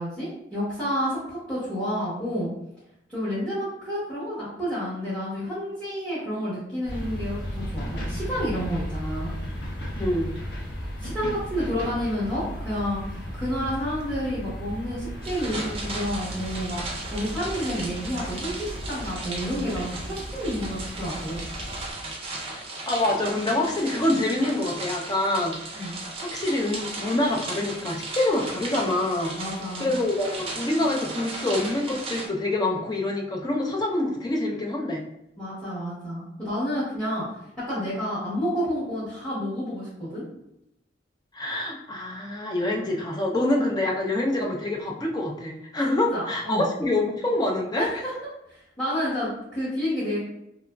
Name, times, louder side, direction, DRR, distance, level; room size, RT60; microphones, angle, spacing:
voice 1, 0.0-2.5 3.1-9.3 11.0-21.4 24.0-24.2 25.7-25.9 29.3-29.9 35.4-37.2 37.7-40.2 42.8-42.9 43.7-43.8 45.8-46.7 47.7-48.1 48.5-50.2, equal, 5° left, -11 dB, 0.9 m, -30 dB
sound 1, 6.8-21.9, equal, 65° left, 0.7 m, -35 dB
voice 2, 10.0-10.3 22.9-25.8 26.2-29.3 29.8-35.0 41.3-48.0, left 1 dB, 20° left, 0 dB, 0.4 m, -26 dB
sound 2, 15.2-32.3, right 2 dB, 30° right, 0.5 m, -36 dB
2.9 x 2.3 x 2.2 m, 0.82 s
head